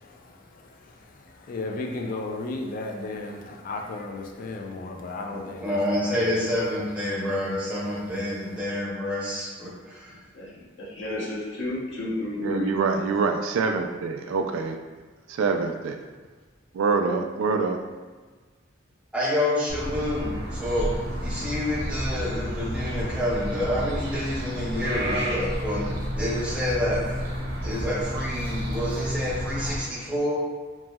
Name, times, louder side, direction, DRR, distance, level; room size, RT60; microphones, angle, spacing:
voice 1, 0.1-6.4, left 2 dB, 45° left, 2 dB, 0.3 m, -35 dB
voice 2, 5.3-10.2 19.1-20.9 21.2-27.2 27.6-30.4, left 1 dB, 5° right, -7 dB, 0.6 m, -28 dB
voice 3, 10.3-12.7, left 1 dB, 65° left, -5 dB, 0.8 m, -32 dB
voice 4, 12.4-14.8 15.3-16.0 16.7-17.8, right 4 dB, 80° right, 6 dB, 0.3 m, -25 dB
sound 1, 19.7-29.8, equal, 55° right, 0.7 m, -30 dB
3.0 x 2.6 x 2.3 m, 1.4 s
head